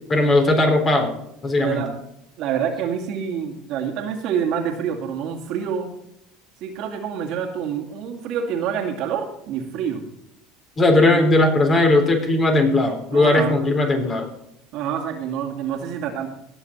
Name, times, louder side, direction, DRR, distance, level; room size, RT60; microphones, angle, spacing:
voice 1, 0.1-1.1 1.4-1.9 10.8-14.3, left 2 dB, 30° left, 2 dB, 4.1 m, -18 dB
voice 2, 1.6-2.0 2.4-5.9 6.6-10.0 11.1-11.3 13.1-13.6 14.7-16.3, right 8 dB, 60° right, 3 dB, 2.3 m, -27 dB
19.5 x 7.1 x 4.4 m, 0.78 s
hypercardioid pair, 85°, 0 cm